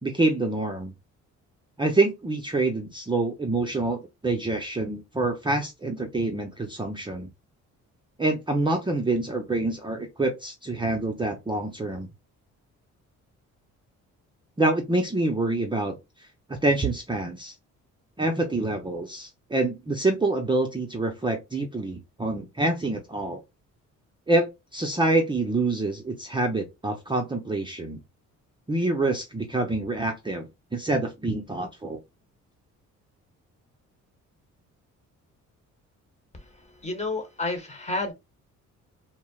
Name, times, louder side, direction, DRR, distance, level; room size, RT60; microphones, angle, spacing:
voice 1, 0.0-0.9 1.8-7.3 8.2-12.1 14.6-15.9 16.6-17.5 18.2-23.4 24.3-28.0 28.7-30.5 30.7-32.0, right 2 dB, 15° right, 0.6 m, -26 dB
voice 2, 36.3-38.1, left 2 dB, 20° left, 1.3 m, -31 dB
4.3 x 2.1 x 2.3 m
cardioid pair, 90°, 30 cm